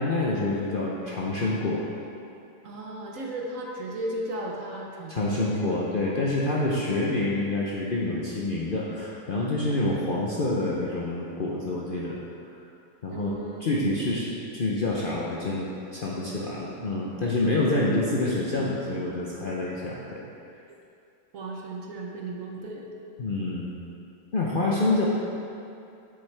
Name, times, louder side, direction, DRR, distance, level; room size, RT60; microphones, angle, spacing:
voice 1, 0.0-1.9 5.1-12.2 13.0-13.3 13.6-20.2 23.2-23.7 24.3-25.0, left 2 dB, 50° left, -5 dB, 0.7 m, -27 dB
voice 2, 2.6-5.6 13.1-14.0 21.3-22.9, right 1 dB, 60° right, -1 dB, 1.2 m, -35 dB
8.1 x 7.4 x 3.3 m, 2.6 s
omnidirectional pair, 1.7 m